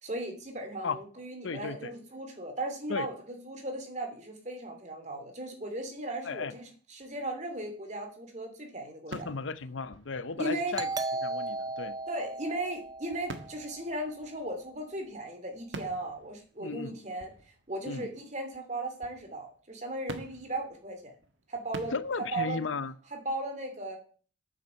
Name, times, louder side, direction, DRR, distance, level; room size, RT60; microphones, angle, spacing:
voice 1, 0.0-3.1 3.4-9.3 10.4-10.8 12.1-17.3 17.7-21.1 21.5-21.9 22.3-22.6 23.1-24.0, right 1 dB, 40° right, 2.8 m, -37 dB
voice 2, 1.4-1.9 2.9-3.1 6.2-6.6 9.1-10.9 11.2-12.0 16.6-17.0 17.8-18.1 21.9-23.0, left 4 dB, 85° left, 0.7 m, -35 dB
sound 1, 7.0-7.7 8.1-8.2 9.1-11.0 13.1-14.8 15.2-15.3 15.7-18.6 18.9-19.7 20.1-23.2, right 3 dB, 75° right, 1.4 m, -48 dB
Doorbell, 10.7-14.1, right 2 dB, 20° right, 0.7 m, -36 dB
9.4 x 7.4 x 7.0 m
head